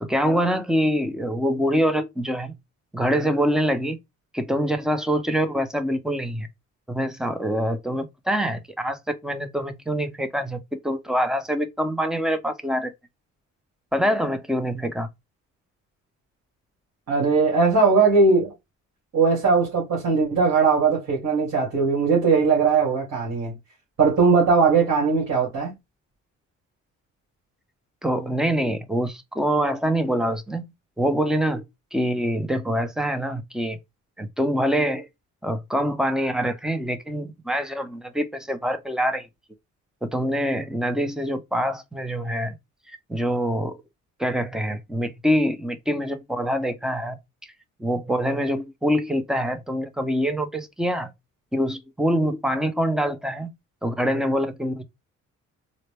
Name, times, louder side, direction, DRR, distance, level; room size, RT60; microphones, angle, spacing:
voice 1, 0.0-2.5 2.9-4.0 4.3-6.5 6.9-12.9 13.9-15.1 28.0-30.6 31.0-31.6 31.9-33.8 34.2-35.1 35.4-39.3 40.0-42.6 43.1-43.8 44.2-47.2 47.8-51.1 51.5-53.5 53.8-54.8, equal, ahead, 0.6 m, -25 dB
voice 2, 17.1-18.5 19.1-23.5 24.0-25.7, right 4 dB, 65° right, 2.2 m, -19 dB
3.9 x 2.1 x 3.3 m
cardioid pair, 90°, 30 cm